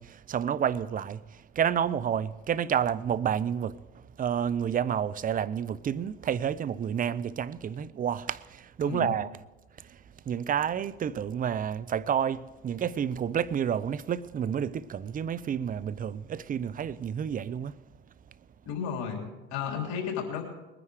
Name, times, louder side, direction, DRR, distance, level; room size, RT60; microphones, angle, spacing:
voice 1, 0.0-9.3 9.8-10.0 10.3-17.7, right 8 dB, 30° right, 0.6 m, -30 dB
voice 2, 8.8-9.2 18.7-20.4, left 7 dB, 65° left, 3.4 m, -33 dB
21.0 x 9.9 x 4.9 m
hypercardioid pair, 80°, 30 cm